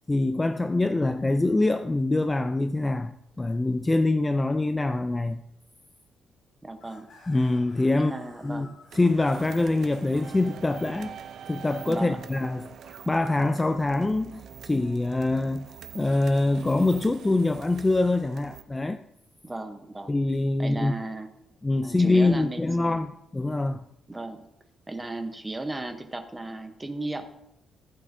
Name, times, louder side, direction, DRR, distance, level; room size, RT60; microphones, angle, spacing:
voice 1, 0.1-5.4 7.3-8.1 8.4-8.7 8.9-11.1 11.5-15.7 15.9-19.0 20.1-20.9 21.6-23.8, left 2 dB, 15° left, 0.3 m, -24 dB
sound 1, 2.1-2.2 2.6-2.8 3.3-3.4 5.3-5.4 6.7-9.9 13.0-14.5 15.8-16.1, left 3 dB, 45° left, 4.0 m, -55 dB
voice 2, 6.6-7.1 7.9-8.7 11.9-12.2 19.4-20.2 20.6-21.3 21.8-23.1 24.1-24.5 24.9-27.2, right 2 dB, 15° right, 0.9 m, -35 dB
sound 2, 8.9-18.6, right 8 dB, 65° right, 0.6 m, -45 dB
15.0 x 8.5 x 2.7 m
cardioid pair, 155°, 0 cm